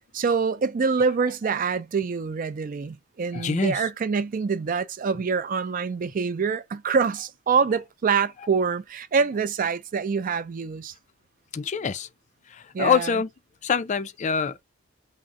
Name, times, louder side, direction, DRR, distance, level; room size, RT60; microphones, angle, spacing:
voice 1, 0.1-10.9 12.7-13.1, right 5 dB, 40° right, 0.4 m, -25 dB
voice 2, 3.3-3.8 11.5-12.1 12.5-13.3 13.6-14.6, left 6 dB, 35° left, 0.4 m, -25 dB
3.7 x 2.1 x 3.6 m
head